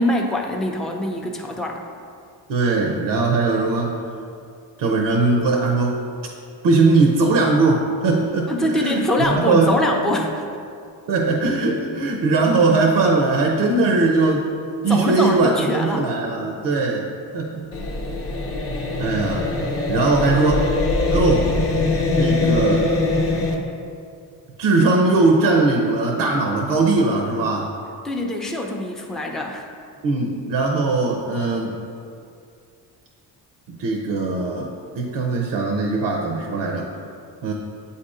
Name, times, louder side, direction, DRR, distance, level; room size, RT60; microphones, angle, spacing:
voice 1, 0.0-1.8 8.5-10.5 14.9-16.1 28.0-29.7, left 1 dB, ahead, 1 dB, 0.5 m, -23 dB
voice 2, 2.5-4.0 4.8-6.0 6.6-9.8 11.1-14.5 14.8-17.1 17.3-17.7 19.0-19.6 19.9-20.7 21.1-21.5 22.2-22.9 24.6-27.7 30.0-31.8 33.7-36.9 37.4-37.5, right 3 dB, 70° right, 1 dB, 0.8 m, -20 dB
sound 1, 17.7-23.6, left 3 dB, 30° left, 0.8 m, -22 dB
8.0 x 2.8 x 4.9 m, 2.4 s
cardioid pair, 100°, 42 cm